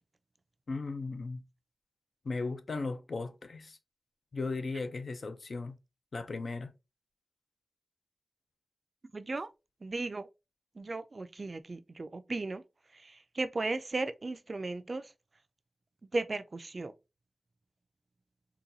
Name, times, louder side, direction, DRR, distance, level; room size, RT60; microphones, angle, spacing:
voice 1, 0.7-1.4 2.3-3.8 4.3-5.8 6.1-6.7, left 3 dB, 70° left, 0.5 m, -36 dB
voice 2, 9.1-9.5 9.8-10.3 10.8-12.6 12.9-15.1 16.1-16.9, right 3 dB, 50° right, 0.3 m, -36 dB
3.9 x 2.2 x 2.7 m
wide cardioid pair, 70°, 0 cm